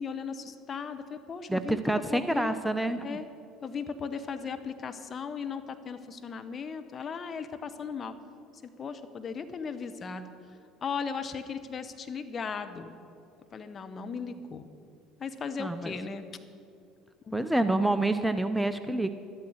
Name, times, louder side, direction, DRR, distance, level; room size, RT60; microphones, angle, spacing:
voice 1, 0.0-1.8 2.1-2.6 3.0-3.3 3.6-8.2 8.6-10.3 10.8-13.0 13.5-14.7 15.2-16.4 17.3-17.4, left 5 dB, 35° left, 8 dB, 1.1 m, -37 dB
voice 2, 1.5-3.2 15.6-15.9 17.3-19.1, right 2 dB, 5° right, 10 dB, 0.7 m, -27 dB
12.5 x 12.5 x 6.6 m, 2.5 s
hypercardioid pair, 65°, 0 cm